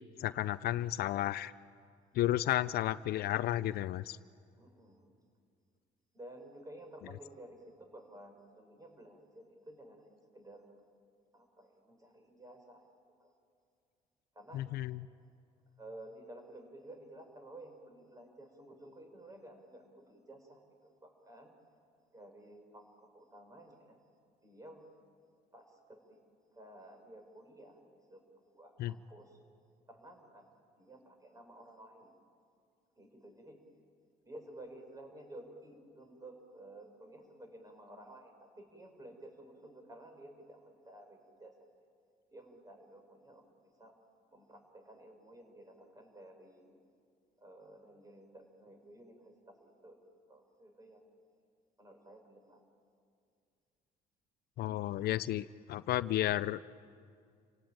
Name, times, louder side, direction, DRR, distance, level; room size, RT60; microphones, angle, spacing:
voice 1, 0.2-1.5 2.1-4.2 14.5-15.1 28.8-28.9 54.6-56.6, left 14 dB, 65° left, 16 dB, 0.6 m, -32 dB
voice 2, 4.6-5.1 6.1-10.8 11.3-12.9 13.2-13.3 14.4-14.7 15.8-20.6 21.0-21.5 22.1-24.0 24.4-24.8 25.5-26.2 26.5-27.8 28.1-29.4 29.9-30.4 30.8-32.1 33.0-33.6 34.2-41.5 42.3-43.4 43.8-43.9 44.3-46.8 47.4-50.0 50.3-51.1 51.8-52.6, right 1 dB, 20° right, 4 dB, 5.4 m, -53 dB
29.0 x 17.5 x 8.9 m, 2.3 s
cardioid pair, 110°, 17 cm